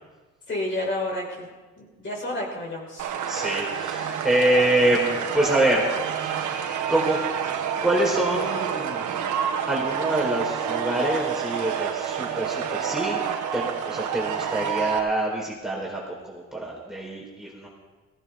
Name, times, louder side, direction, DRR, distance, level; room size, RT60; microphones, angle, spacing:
voice 1, 0.5-1.5 1.8-3.1, left 1 dB, 40° left, -2 dB, 6.0 m, -30 dB
sound 1, 3.0-15.0, right 8 dB, 75° right, 1.7 m, -28 dB
voice 2, 3.3-5.9 6.2-6.5 6.9-7.2 7.6-9.1 9.6-13.2 13.5-17.7, right 1 dB, ahead, -3 dB, 4.5 m, -25 dB
18.0 x 16.5 x 3.9 m, 1.3 s
cardioid pair, 90°, 30 cm